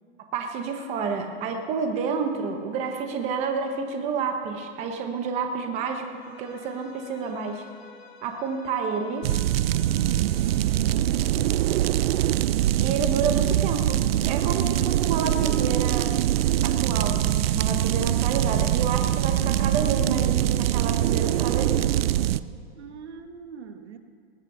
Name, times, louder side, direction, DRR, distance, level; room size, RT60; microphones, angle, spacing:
voice 1, 0.3-6.1 6.4-7.6 8.2-9.3 12.8-16.1 16.6-21.9, right 5 dB, 20° right, 4 dB, 0.9 m, -29 dB
Bowed string instrument, 5.9-10.9, left 4 dB, 65° left, 2.2 m, -50 dB
sound 1, 9.2-22.4, right 13 dB, 60° right, 0.5 m, -23 dB
voice 2, 9.9-10.4 22.7-24.0, right 6 dB, 75° right, 7 dB, 1.4 m, -42 dB
19.5 x 8.2 x 5.6 m, 2.3 s
hypercardioid pair, 160°, 34 cm